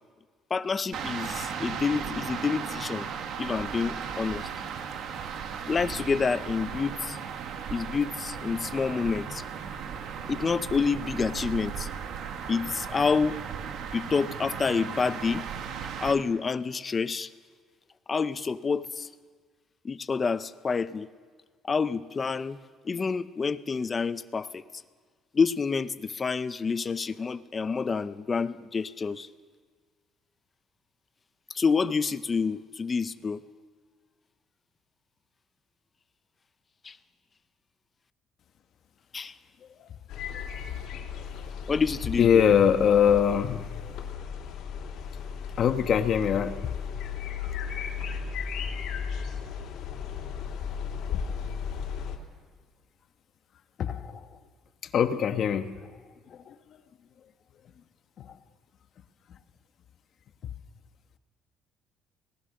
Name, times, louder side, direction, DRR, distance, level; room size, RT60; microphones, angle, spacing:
voice 1, 0.5-3.1 3.4-4.5 5.7-7.2 7.7-9.4 10.3-11.9 12.5-13.4 13.9-15.4 16.0-17.3 18.1-19.1 19.8-21.1 21.6-22.6 22.8-24.6 25.3-29.3 31.5-33.4 36.8-37.0 39.1-39.4 41.7-42.4, left 5 dB, 25° left, 13 dB, 0.7 m, -28 dB
sound 1, 0.9-16.1, right 7 dB, 60° right, 1.7 m, -36 dB
sound 2, 40.1-52.2, left 7 dB, 70° left, 3.2 m, -35 dB
voice 2, 42.2-43.7 45.6-46.7 51.1-51.3 53.8-54.4 54.9-55.7 56.3-56.8 58.2-58.4 60.4-60.5, left 8 dB, 50° left, 8 dB, 1.3 m, -23 dB
24.5 x 18.5 x 6.6 m, 1.6 s
cardioid pair, 135°, 0 cm